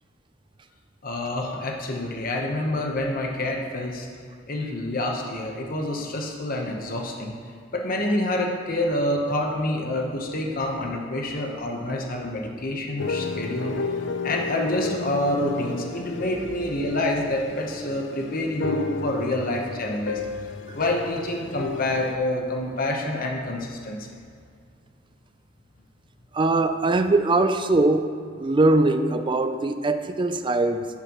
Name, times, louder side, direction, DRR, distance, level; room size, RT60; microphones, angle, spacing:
voice 1, 1.0-4.1 4.5-7.4 7.7-13.8 14.2-20.2 20.7-24.1, left 1 dB, 45° left, 1 dB, 1.0 m, -27 dB
sound 1, 13.0-22.2, left 3 dB, 65° left, 0.5 m, -32 dB
voice 2, 26.3-28.1 28.4-30.9, right 2 dB, 25° right, 9 dB, 0.4 m, -21 dB
10.5 x 9.9 x 3.0 m, 2.2 s
head